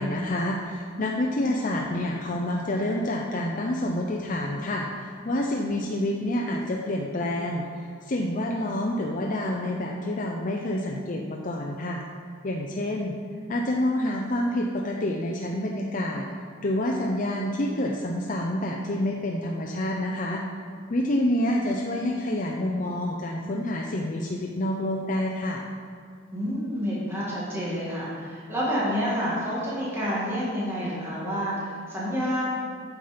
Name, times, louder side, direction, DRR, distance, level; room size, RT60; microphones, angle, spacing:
voice 1, 0.0-7.7 8.0-12.0 12.4-13.2 13.5-16.3 16.6-20.4 20.9-25.6, left 1 dB, 40° left, -1 dB, 0.6 m, -28 dB
voice 2, 26.3-32.5, equal, 10° right, -8 dB, 1.8 m, -28 dB
9.1 x 5.7 x 5.1 m, 2.2 s
head